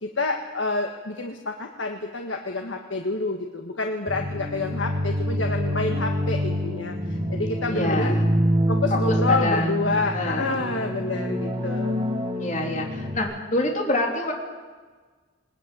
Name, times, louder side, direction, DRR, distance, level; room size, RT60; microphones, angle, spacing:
voice 1, 0.0-8.2 8.7-12.0, left 3 dB, 85° left, 3 dB, 1.6 m, -28 dB
sound 1, 4.1-13.2, equal, 25° right, 2.8 m, -26 dB
voice 2, 7.7-8.3 9.3-10.9 12.4-14.3, left 1 dB, 40° left, 1 dB, 3.5 m, -27 dB
21.0 x 19.0 x 9.3 m, 1.4 s
head